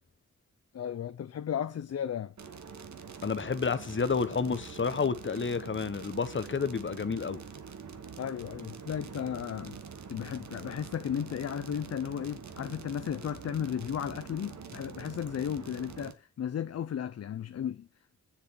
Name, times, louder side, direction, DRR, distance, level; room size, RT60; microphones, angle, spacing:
voice 1, 0.7-2.3 8.2-9.8 10.1-17.9, left 9 dB, 55° left, 0.5 m, -34 dB
sound 1, 2.4-16.1, right 6 dB, 70° right, 1.1 m, -45 dB
voice 2, 3.2-7.4, left 5 dB, 40° left, 0.9 m, -30 dB
7.5 x 7.0 x 4.3 m
cardioid pair, 55°, 30 cm